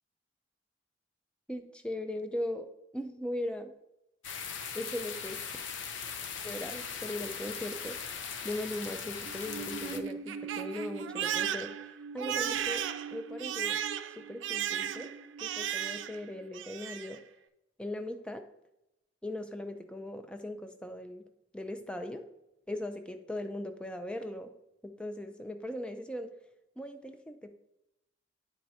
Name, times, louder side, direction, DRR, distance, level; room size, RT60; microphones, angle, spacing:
voice 1, 1.5-2.7 2.9-3.7 4.7-5.4 6.4-8.0 8.4-11.7 12.1-13.8 14.2-15.1 15.4-17.2 17.8-18.5 19.2-21.2 21.5-22.3 22.7-24.5 24.8-26.3 26.8-27.5, left 1 dB, 5° left, 7 dB, 0.4 m, -39 dB
sound 1, 4.2-10.0, left 6 dB, 75° left, 0.6 m, -39 dB
Crying sobbing, 9.3-16.3 16.5-17.2, right 9 dB, 80° right, 0.4 m, -35 dB
10.0 x 4.5 x 2.7 m, 0.88 s
head